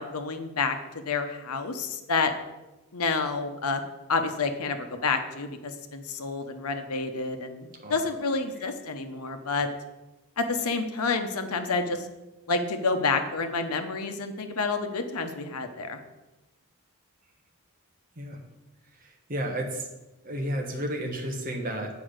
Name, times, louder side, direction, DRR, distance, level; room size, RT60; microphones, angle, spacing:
voice 1, 0.0-2.3 2.9-3.8 4.1-9.7 10.4-12.1 12.5-16.0, left 4 dB, 85° left, 7 dB, 0.9 m, -29 dB
voice 2, 19.3-19.9 20.2-21.9, right 1 dB, 40° right, 2 dB, 1.3 m, -32 dB
8.4 x 4.9 x 6.4 m, 1.0 s
head